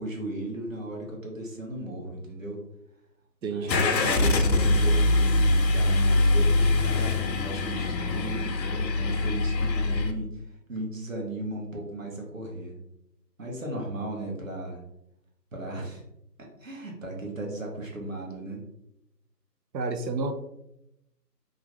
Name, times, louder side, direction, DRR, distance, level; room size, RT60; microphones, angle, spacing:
voice 1, 0.0-2.6 3.5-10.4 10.7-12.8 13.4-14.8 15.5-16.0 16.6-18.6, right 2 dB, 50° right, -1 dB, 0.8 m, -36 dB
voice 2, 3.4-3.9 19.7-20.3, right 3 dB, 90° right, 7 dB, 0.6 m, -30 dB
Car / Engine starting, 3.7-10.1, left 2 dB, 80° left, 0.6 m, -23 dB
2.5 x 2.4 x 3.1 m, 0.84 s
figure-of-eight pair, 165°, 50 cm